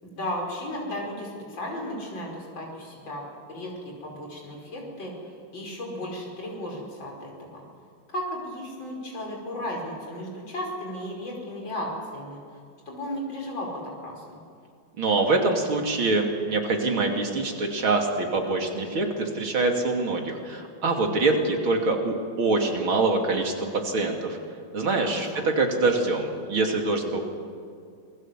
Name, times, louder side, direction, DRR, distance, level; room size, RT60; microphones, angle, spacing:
voice 1, 0.0-3.2 3.5-7.6 8.1-12.6 12.9-14.4 25.0-25.5, left 1 dB, 70° left, -1 dB, 5.9 m, -35 dB
voice 2, 15.0-24.4 24.7-27.2, right 3 dB, 80° right, 2 dB, 3.7 m, -25 dB
28.0 x 21.0 x 7.6 m, 2.3 s
omnidirectional pair, 2.2 m